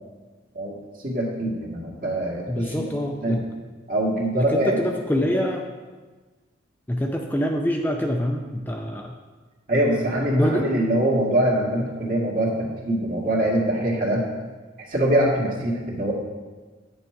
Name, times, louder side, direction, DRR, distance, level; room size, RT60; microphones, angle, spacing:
voice 1, 1.0-2.9 3.2-3.4 3.9-4.8 9.7-14.3 14.9-16.1, right 1 dB, 45° right, -2 dB, 1.9 m, -23 dB
voice 2, 2.5-3.4 4.4-5.7 6.9-9.2 9.7-10.7, equal, 10° left, 2 dB, 0.5 m, -25 dB
10.0 x 6.9 x 4.6 m, 1.3 s
head